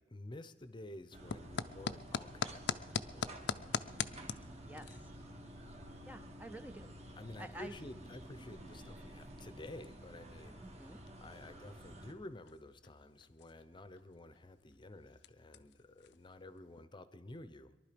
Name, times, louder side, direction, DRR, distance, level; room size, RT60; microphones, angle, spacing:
voice 1, 0.0-3.5 7.2-10.7 11.2-17.7, left 1 dB, 25° left, 13 dB, 0.7 m, -51 dB
sound 1, 0.6-16.9, left 6 dB, 70° left, 0.5 m, -46 dB
sound 2, 1.1-12.1, right 1 dB, 40° right, 1.4 m, -51 dB
voice 2, 4.5-5.1 6.1-6.9 7.4-7.8 10.6-11.0, right 1 dB, 10° right, 8 dB, 0.5 m, -50 dB
22.5 x 11.5 x 5.1 m, 1.2 s
head